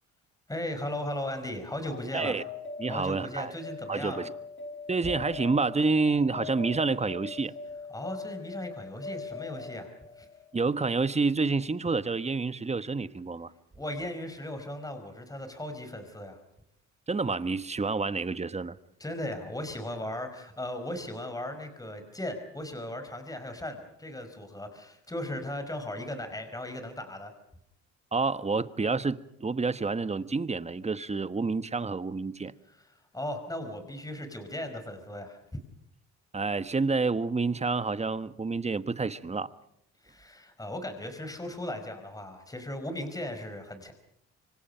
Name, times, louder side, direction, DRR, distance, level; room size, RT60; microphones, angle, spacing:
voice 1, 0.5-2.4 2.9-4.2 7.9-10.3 13.8-16.4 19.0-27.3 32.7-35.4 40.0-43.9, left 1 dB, 10° left, 5.2 m, -37 dB
sound 1, 1.8-10.8, left 4 dB, 40° left, 7.7 m, -42 dB
voice 2, 2.8-3.5 3.9-4.3 4.9-7.5 10.5-13.5 17.1-18.8 28.1-32.5 36.3-39.5, right 4 dB, 20° right, 1.3 m, -28 dB
27.5 x 24.5 x 5.7 m
cardioid pair, 90°, 30 cm